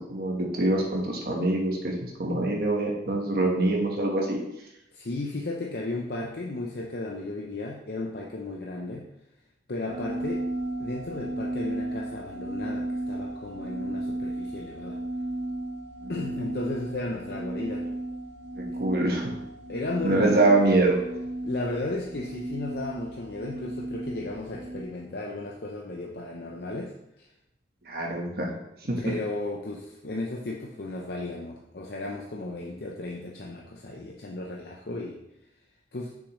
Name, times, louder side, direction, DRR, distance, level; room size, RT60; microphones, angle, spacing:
voice 1, 0.1-1.9 2.2-4.4 16.0-16.1 18.6-19.2 20.0-20.9 27.9-28.5 28.9-29.0, right 2 dB, 55° right, -1 dB, 1.2 m, -24 dB
voice 2, 4.9-9.1 9.7-10.5 10.8-15.0 16.1-17.8 18.7-18.8 19.7-20.8 21.4-26.9 27.2-27.3 29.0-35.2 35.9-36.1, left 2 dB, 60° left, -1 dB, 0.7 m, -34 dB
sound 1, 9.9-24.8, right 1 dB, 85° right, 1.5 m, -34 dB
6.5 x 6.3 x 3.1 m, 0.84 s
head